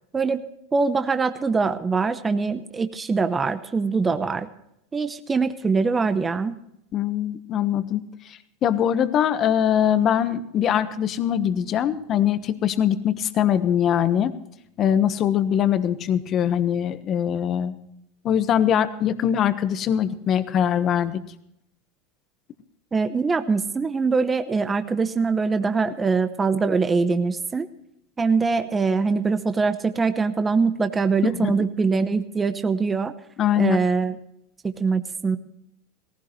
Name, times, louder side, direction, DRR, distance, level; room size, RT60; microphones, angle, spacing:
voice 1, 0.7-4.5 4.9-6.6 22.9-27.7 28.2-33.1 33.6-34.2 34.8-35.4, right 4 dB, 15° right, 9 dB, 0.8 m, -23 dB
voice 2, 6.9-8.0 8.3-14.3 14.8-17.7 18.2-21.2 31.3-31.5 33.4-33.8, left 9 dB, 35° left, 11 dB, 1.2 m, -22 dB
18.5 x 16.0 x 3.2 m, 0.79 s
supercardioid pair, 130°, 0 cm